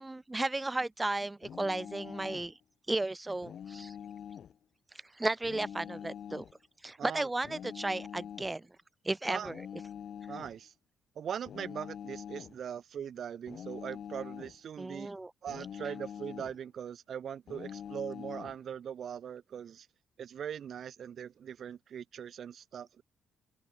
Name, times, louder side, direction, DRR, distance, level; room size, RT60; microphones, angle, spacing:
voice 1, 0.0-2.6 2.9-4.0 5.1-6.4 6.8-8.6 9.0-9.6 14.8-15.3, right 2 dB, 15° right, 0.5 m, -34 dB
sound 1, 1.4-2.5 3.4-4.6 5.4-6.6 7.4-8.5 9.4-10.6 11.5-12.6 13.5-14.6 15.5-16.6 17.5-18.6, left 8 dB, 60° left, 1.1 m, -44 dB
voice 2, 7.0-7.3 9.3-9.5 10.3-10.7 11.1-15.1 15.4-19.9 20.2-23.0, right 8 dB, 60° right, 1.7 m, -41 dB
open air
cardioid pair, 90°, 0 cm